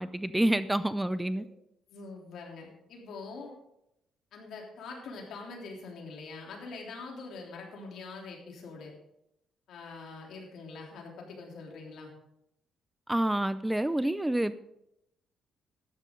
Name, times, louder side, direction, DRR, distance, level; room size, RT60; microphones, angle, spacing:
voice 1, 0.0-1.5 13.1-14.6, right 1 dB, 10° right, 14 dB, 0.5 m, -28 dB
voice 2, 1.9-3.5 4.3-8.9 9.7-12.1, left 3 dB, 75° left, 0 dB, 3.4 m, -44 dB
13.5 x 10.5 x 3.8 m, 0.81 s
cardioid pair, 90°, 0 cm